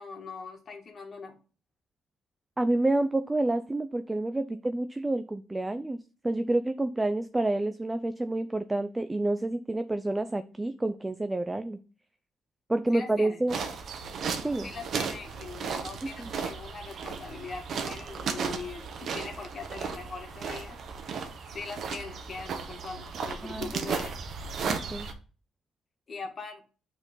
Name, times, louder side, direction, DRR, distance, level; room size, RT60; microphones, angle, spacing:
voice 1, 0.0-1.4 12.9-13.4 14.6-21.2 21.5-24.1 26.1-26.6, left 4 dB, 45° left, 2 dB, 2.2 m, -41 dB
voice 2, 2.6-6.0 6.2-11.8 12.7-13.6 14.4-14.7 16.2-16.3 23.4-23.7 24.7-25.1, right 2 dB, 15° right, 10 dB, 0.6 m, -28 dB
sound 1, 13.5-25.1, right 5 dB, 60° right, 1.4 m, -35 dB
8.6 x 4.6 x 3.9 m, 0.36 s
cardioid pair, 90°, 0 cm